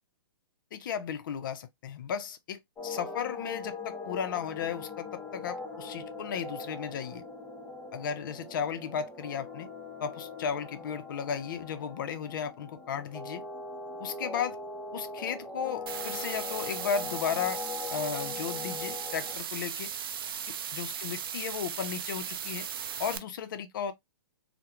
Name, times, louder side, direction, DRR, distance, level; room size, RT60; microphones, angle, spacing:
voice 1, 0.7-7.2 7.9-9.7 10.0-13.4 14.0-14.6 14.9-17.6 17.9-19.9 20.5-22.7 23.0-23.9, left 7 dB, 50° left, 0.5 m, -35 dB
sound 1, 2.8-19.4, left 4 dB, 10° left, 0.6 m, -41 dB
sound 2, 15.9-23.2, right 8 dB, 60° right, 0.4 m, -37 dB
2.3 x 2.1 x 2.8 m
hypercardioid pair, 130°, 14 cm